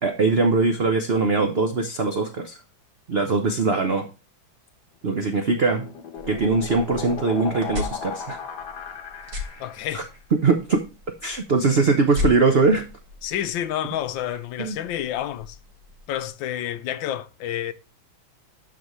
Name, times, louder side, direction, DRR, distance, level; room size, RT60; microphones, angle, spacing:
voice 1, 0.0-2.6 3.1-4.1 5.0-5.9 6.3-8.4 9.9-10.0 10.3-10.9 11.2-12.8 14.6-14.7, right 4 dB, 90° right, 0.5 m, -21 dB
sound 1, 5.1-9.9, left 7 dB, 60° left, 1.7 m, -36 dB
sound 2, 6.2-16.3, left 4 dB, 60° right, 2.0 m, -37 dB
voice 2, 9.6-10.1 13.2-15.6 16.1-17.7, left 11 dB, 75° left, 1.3 m, -29 dB
12.0 x 4.3 x 3.1 m
omnidirectional pair, 2.2 m